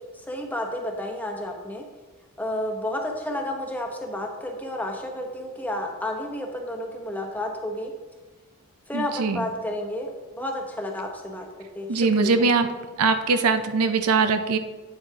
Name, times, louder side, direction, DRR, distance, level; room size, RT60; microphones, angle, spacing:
voice 1, 0.1-1.8 2.4-7.9 8.9-12.4, left 1 dB, 5° left, 1 dB, 0.9 m, -31 dB
voice 2, 8.9-9.4 11.9-12.7 13.0-14.6, right 4 dB, 85° right, 9 dB, 0.6 m, -21 dB
8.7 x 8.0 x 2.8 m, 1.3 s
head